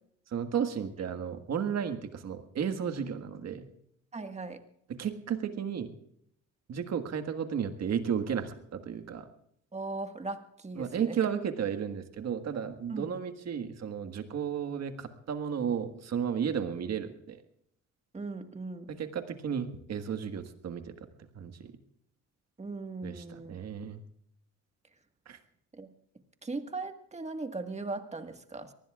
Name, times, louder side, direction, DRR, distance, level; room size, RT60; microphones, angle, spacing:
voice 1, 0.3-3.7 4.9-5.9 6.7-9.3 10.7-17.4 18.9-20.9 21.3-21.8 23.0-24.0 25.2-25.4, right 7 dB, 60° right, 8 dB, 1.6 m, -33 dB
voice 2, 4.1-4.6 9.7-11.2 12.9-13.1 18.1-18.9 22.6-23.6 25.7-25.9 26.4-28.7, right 3 dB, 20° right, 7 dB, 1.6 m, -38 dB
25.0 x 19.0 x 2.4 m, 0.70 s
cardioid pair, 90°, 30 cm